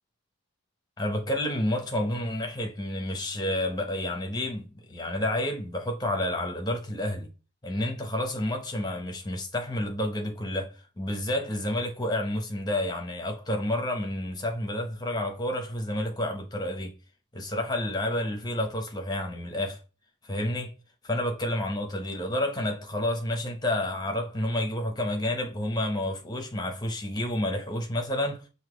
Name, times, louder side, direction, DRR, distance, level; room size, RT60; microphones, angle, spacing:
voice 1, 1.0-7.3 7.6-16.9 17.3-19.8 20.2-20.7 21.0-28.4, left 1 dB, 20° left, 1.0 m, -30 dB
5.8 x 2.8 x 3.2 m
head